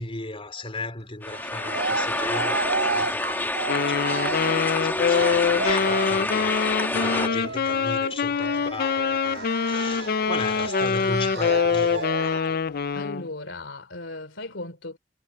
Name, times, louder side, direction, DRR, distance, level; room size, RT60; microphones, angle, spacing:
voice 1, 0.0-12.6, left 2 dB, 30° left, 3.3 m, -36 dB
sound 1, 1.2-7.3, left 2 dB, 10° left, 1.3 m, -28 dB
Cheering, 1.3-6.3 7.0-12.6, right 4 dB, 60° right, 5.4 m, -32 dB
Wind instrument woodwind instrument, 3.7-13.3, left 6 dB, 50° left, 0.4 m, -24 dB
voice 2, 12.9-15.0, left 2 dB, 70° left, 3.3 m, -36 dB
head